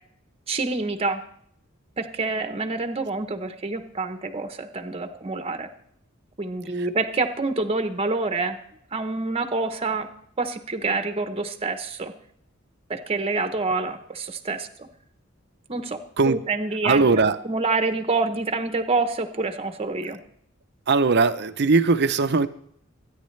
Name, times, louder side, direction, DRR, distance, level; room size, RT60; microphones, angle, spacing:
voice 1, 0.5-1.2 2.0-5.7 6.4-8.6 8.9-10.1 10.4-12.1 12.9-14.9 15.7-16.0 16.3-17.1 17.4-20.2, right 3 dB, 30° right, 8 dB, 1.0 m, -27 dB
voice 2, 16.8-17.4 20.9-22.5, right 4 dB, 55° right, 11 dB, 0.7 m, -20 dB
24.0 x 9.7 x 3.3 m, 0.67 s
head